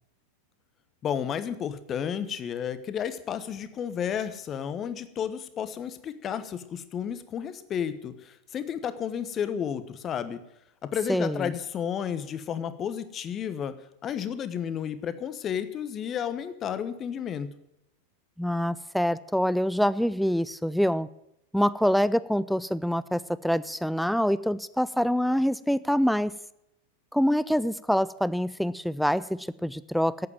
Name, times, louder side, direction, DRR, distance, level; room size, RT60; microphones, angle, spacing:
voice 1, 1.0-10.4 10.8-17.5, left 8 dB, 25° left, 13 dB, 1.1 m, -32 dB
voice 2, 11.1-11.5 18.4-21.1 21.5-26.3 27.1-30.3, equal, ahead, 17 dB, 0.4 m, -25 dB
12.0 x 8.6 x 8.9 m, 0.82 s
figure-of-eight pair, 90°, 0 cm